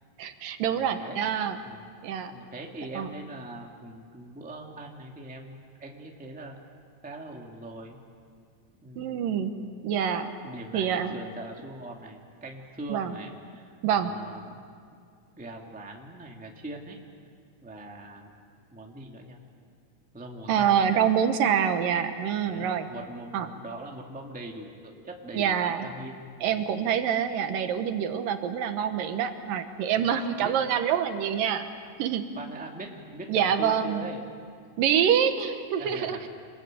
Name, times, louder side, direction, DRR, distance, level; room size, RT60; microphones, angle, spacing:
voice 1, 0.2-1.6 2.0-2.3 3.0-3.1 9.0-9.5 9.8-10.3 10.7-11.2 12.9-13.2 13.8-14.1 20.5-22.9 23.3-23.5 25.3-25.9 26.4-31.7 32.0-32.2 33.3-34.1 34.8-36.2, right 8 dB, 80° right, 8 dB, 2.9 m, -26 dB
voice 2, 0.7-1.2 1.6-1.8 2.2-6.6 7.0-8.0 8.8-9.3 10.4-14.6 15.4-17.0 17.6-18.3 18.7-19.4 20.1-21.1 22.4-26.2 26.5-26.8 29.9-30.6 32.3-34.3 35.8-36.3, right 2 dB, 5° right, 0 dB, 1.6 m, -42 dB
27.0 x 21.5 x 9.0 m, 2.2 s
omnidirectional pair, 4.0 m